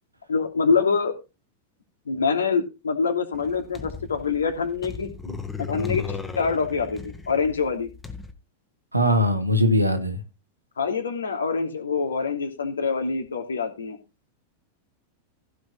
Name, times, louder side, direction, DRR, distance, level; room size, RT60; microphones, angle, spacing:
voice 1, 0.3-1.1 2.1-7.9 10.8-14.0, left 5 dB, 70° left, 2.9 m, -25 dB
sound 1, 3.3-8.3, left 5 dB, 10° left, 1.8 m, -36 dB
voice 2, 8.9-10.2, equal, 85° right, 2.4 m, -20 dB
15.5 x 6.3 x 4.5 m
figure-of-eight pair, 90°, 0 cm